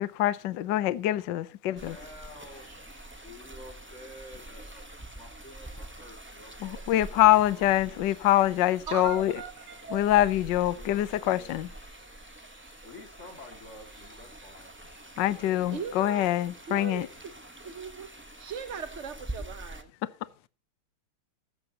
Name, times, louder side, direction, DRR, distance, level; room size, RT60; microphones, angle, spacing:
voice 1, 0.0-2.0 6.6-9.4 9.9-11.7 15.2-17.1, left 14 dB, 65° left, 1.3 m, -25 dB
voice 2, 1.7-2.7 3.2-4.8 5.1-8.0 10.7-11.6 12.8-14.7 15.4-15.9 16.7-16.9, left 1 dB, 35° left, 2.5 m, -49 dB
sound 1, 1.7-19.0, right 1 dB, 35° right, 6.5 m, -57 dB
sound 2, 1.8-19.8, right 1 dB, 15° right, 0.3 m, -46 dB
voice 3, 8.9-10.0 15.7-16.3 16.7-17.1 17.6-18.1 18.4-19.9, right 6 dB, 50° right, 0.9 m, -38 dB
14.5 x 13.5 x 2.9 m
omnidirectional pair, 2.3 m